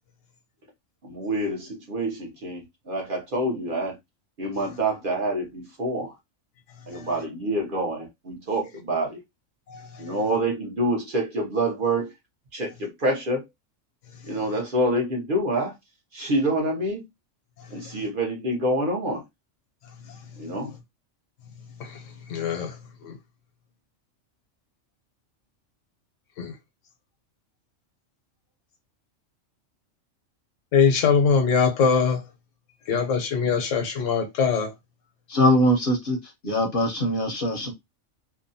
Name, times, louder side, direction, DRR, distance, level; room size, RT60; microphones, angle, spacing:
voice 1, 1.0-4.0 4.4-6.1 6.9-9.2 10.0-12.1 12.5-13.5 14.2-15.7 16.1-17.0 17.7-19.2 20.4-20.7, right 1 dB, 50° right, 0.9 m, -27 dB
voice 2, 9.7-10.1 17.8-18.0 20.1-20.2 21.8-22.0 22.3-22.8 23.0-23.2 26.4-26.5 30.7-32.2 32.9-34.7, left 6 dB, 80° left, 1.0 m, -23 dB
voice 3, 35.3-36.2 36.4-37.7, equal, 55° left, 0.7 m, -22 dB
2.7 x 2.2 x 2.6 m
omnidirectional pair, 1.3 m